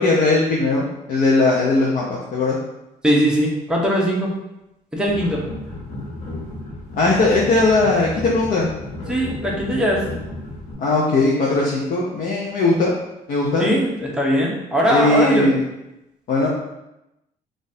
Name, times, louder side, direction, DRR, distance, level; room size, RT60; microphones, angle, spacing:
voice 1, 0.0-2.6 7.0-8.7 10.8-12.9 13.3-13.7 14.9-15.6 16.3-16.5, left 2 dB, 55° left, -4 dB, 0.6 m, -19 dB
voice 2, 3.0-4.3 4.9-5.4 9.1-10.0 13.6-15.5, equal, 5° right, -3 dB, 0.8 m, -20 dB
sound 1, 5.1-10.7, left 1 dB, 80° left, 1.1 m, -33 dB
3.9 x 2.5 x 2.6 m, 0.91 s
cardioid pair, 110°, 17 cm